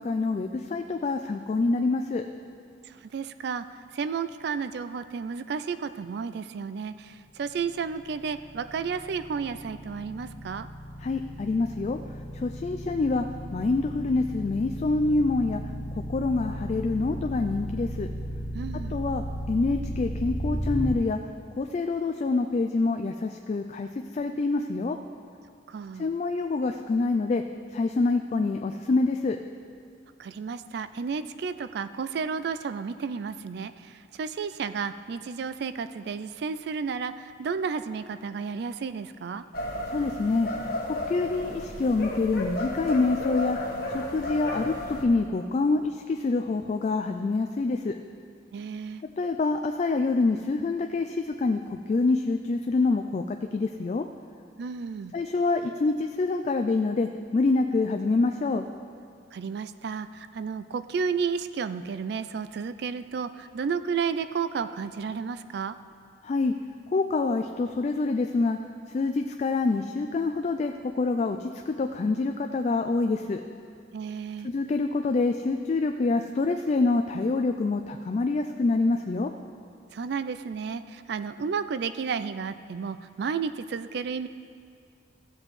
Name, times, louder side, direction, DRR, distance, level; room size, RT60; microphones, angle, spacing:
voice 1, 0.0-2.2 11.0-12.0 12.3-13.3 13.5-15.6 16.1-18.1 18.9-21.2 21.6-23.9 24.1-25.0 26.0-27.4 27.7-29.4 39.9-40.5 40.8-43.6 43.9-48.0 49.2-54.0 55.1-58.7 66.2-66.5 66.9-68.6 68.9-73.4 74.4-79.3, left 3 dB, 40° left, 5 dB, 0.3 m, -26 dB
voice 2, 2.9-3.7 3.9-10.7 18.5-19.0 25.7-26.1 30.2-39.4 48.5-49.0 54.6-55.1 59.3-65.8 73.9-74.5 79.9-84.3, right 5 dB, 60° right, 12 dB, 0.3 m, -32 dB
sound 1, 7.6-20.9, equal, 5° left, 1.9 m, -35 dB
sound 2, 39.5-45.0, left 1 dB, 55° left, 1.2 m, -33 dB
15.5 x 7.4 x 3.2 m, 2.3 s
head